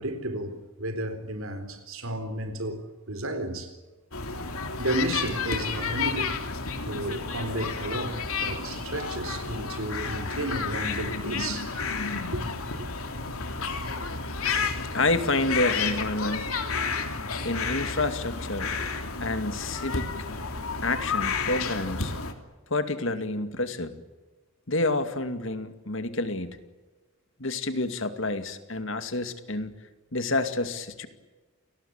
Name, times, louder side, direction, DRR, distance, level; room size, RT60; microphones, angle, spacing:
voice 1, 0.0-3.7 4.8-6.3 6.8-11.8 12.3-12.4 12.8-12.9, right 1 dB, 70° right, 4.1 m, -32 dB
sound 1, 4.1-22.3, left 4 dB, 80° left, 3.2 m, -31 dB
voice 2, 14.9-16.5 17.4-18.7 19.2-20.1 20.8-22.1 22.7-23.9 24.7-26.6 27.4-29.7 30.1-31.1, left 2 dB, 60° left, 2.4 m, -28 dB
29.0 x 19.5 x 8.9 m
head